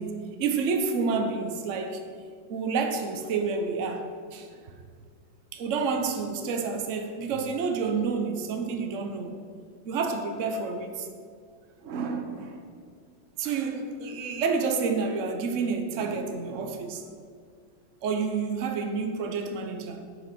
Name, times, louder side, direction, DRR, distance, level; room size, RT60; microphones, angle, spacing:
voice 1, 0.0-2.0 2.5-4.1 4.3-4.5 5.5-9.3 9.9-11.1 11.8-12.6 13.4-17.0 18.0-20.0, right 5 dB, 50° right, 1.0 m, -29 dB
12.0 x 5.8 x 6.0 m
omnidirectional pair, 2.2 m